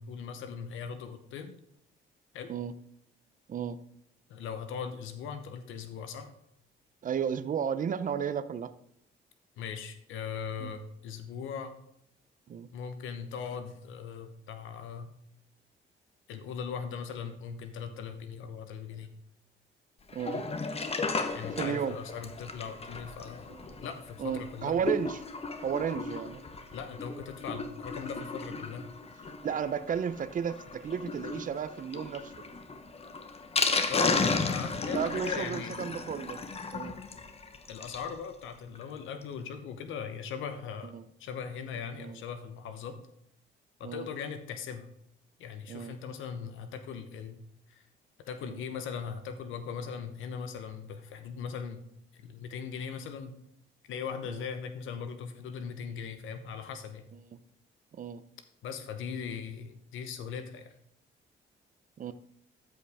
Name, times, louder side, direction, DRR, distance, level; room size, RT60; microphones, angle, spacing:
voice 1, 0.0-1.5 2.3-2.5 4.3-6.3 9.6-11.7 12.7-15.1 16.3-19.1 21.3-23.5 23.8-24.7 26.7-28.8 33.9-35.7 37.7-40.9 41.2-43.0 43.8-44.9 45.4-47.4 47.7-47.8 48.3-51.8 52.2-53.4 53.9-57.0 58.6-60.7, left 6 dB, 80° left, 8 dB, 0.9 m, -39 dB
voice 2, 7.0-8.7 10.6-10.7 12.5-12.7 20.1-20.4 21.6-22.0 23.5-23.6 24.2-25.2 25.6-26.4 29.4-32.3 34.9-36.4 36.7-37.0 40.9-41.0 42.0-42.2 43.8-44.1 45.7-45.9 48.4-48.6 54.3-54.4 57.3-57.4 58.0-58.2 62.0-62.1, right 8 dB, 40° right, 13 dB, 0.6 m, -33 dB
Sink (filling or washing), 20.1-38.1 38.5-38.6 38.8-38.9 39.2-39.3, left 4 dB, 30° left, 1.0 m, -34 dB
13.5 x 5.1 x 3.5 m, 0.74 s
cardioid pair, 90°, 20 cm